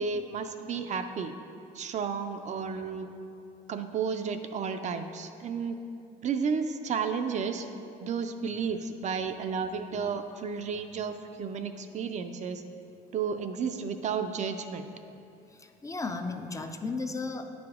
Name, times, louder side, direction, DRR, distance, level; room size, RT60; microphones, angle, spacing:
voice 1, 0.0-1.3 1.7-3.1 3.7-5.8 6.2-7.7 8.0-12.6 13.1-14.9, right 6 dB, 45° right, 7 dB, 0.4 m, -32 dB
voice 2, 15.5-17.4, left 3 dB, 20° left, 6 dB, 0.4 m, -35 dB
8.8 x 4.9 x 3.5 m, 2.7 s
cardioid pair, 110°, 17 cm